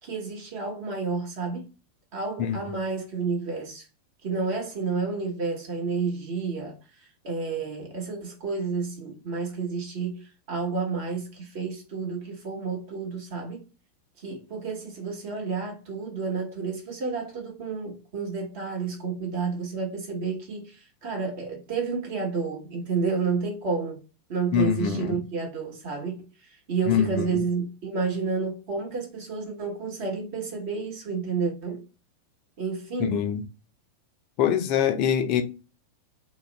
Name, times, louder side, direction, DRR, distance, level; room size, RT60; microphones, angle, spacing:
voice 1, 0.0-1.6 2.1-3.9 4.2-13.6 14.2-24.0 24.3-31.8 32.6-33.1, right 4 dB, 45° right, 1.0 m, -30 dB
voice 2, 24.5-25.2 26.9-27.4 33.1-33.4 34.4-35.4, left 8 dB, 40° left, 0.4 m, -24 dB
2.3 x 2.0 x 3.2 m
figure-of-eight pair, 90°, 0 cm